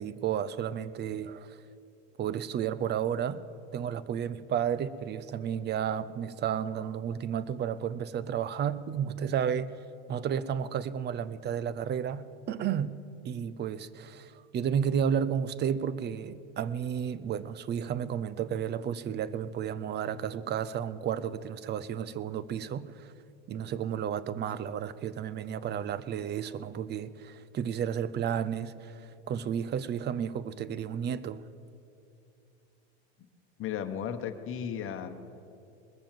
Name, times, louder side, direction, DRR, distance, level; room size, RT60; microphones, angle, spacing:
voice 1, 0.0-1.6 2.2-3.4 3.7-9.7 10.1-13.0 13.2-23.1 23.5-29.0 29.3-31.4, right 8 dB, 30° right, 0.6 m, -32 dB
voice 2, 33.6-35.1, left 8 dB, 40° left, 1.2 m, -35 dB
20.5 x 7.0 x 7.6 m
supercardioid pair, 100°, 33 cm